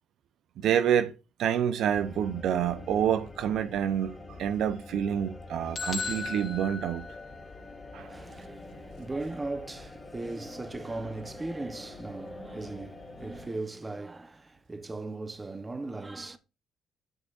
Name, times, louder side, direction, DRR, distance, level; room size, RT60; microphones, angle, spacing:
voice 1, 0.6-1.1 1.4-7.0 7.9-8.1, right 9 dB, 75° right, 0.5 m, -28 dB
sound 1, 1.9-13.5, left 2 dB, 25° left, 2.3 m, -45 dB
sound 2, 5.8-7.7, left 4 dB, 45° left, 0.7 m, -36 dB
voice 2, 8.0-16.4, right 2 dB, 20° right, 0.8 m, -38 dB
7.9 x 6.2 x 2.4 m
cardioid pair, 90°, 0 cm